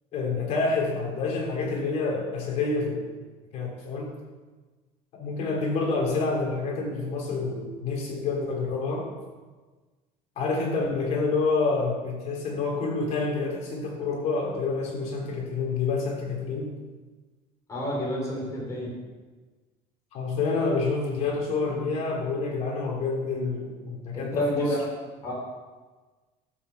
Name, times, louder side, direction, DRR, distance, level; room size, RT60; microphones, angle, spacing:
voice 1, 0.1-3.1 3.5-4.1 5.1-9.1 10.3-16.7 20.1-24.8, left 3 dB, 50° left, -1 dB, 3.3 m, -28 dB
voice 2, 17.7-18.9 24.1-24.9 25.2-25.3, equal, 20° left, -4 dB, 3.9 m, -29 dB
12.5 x 6.7 x 6.9 m, 1.3 s
cardioid pair, 170°, 15 cm